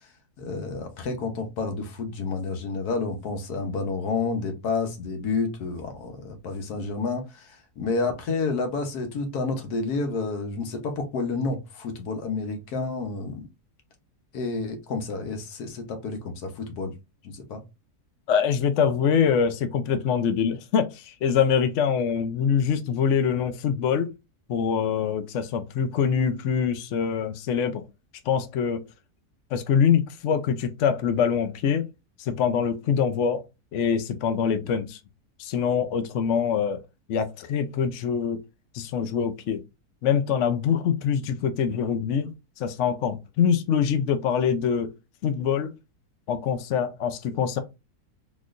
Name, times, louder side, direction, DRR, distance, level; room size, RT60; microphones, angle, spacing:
voice 1, 0.4-13.5 14.3-16.9 17.2-17.6, left 4 dB, 80° left, 1.4 m, -30 dB
voice 2, 18.3-24.1 24.5-27.8 28.3-28.8 29.5-31.9 32.2-33.4 33.7-35.0 35.4-36.8 37.1-38.4 38.7-39.6 40.0-44.9 45.2-45.7 46.3-47.6, left 7 dB, 65° left, 0.8 m, -24 dB
4.1 x 3.0 x 2.4 m
omnidirectional pair, 1.6 m